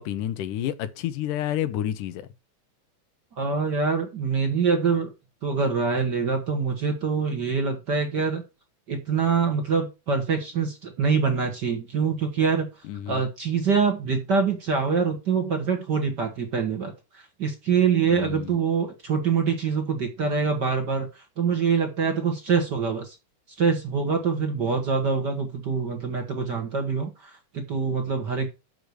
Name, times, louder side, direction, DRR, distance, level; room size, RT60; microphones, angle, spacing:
voice 1, 0.0-2.3 12.8-13.3 18.1-18.6, left 11 dB, 90° left, 2.5 m, -30 dB
voice 2, 3.4-5.1 5.4-8.4 8.9-12.7 13.1-23.2 23.6-28.5, right 5 dB, 40° right, 1.7 m, -25 dB
7.0 x 6.1 x 6.3 m
omnidirectional pair, 3.6 m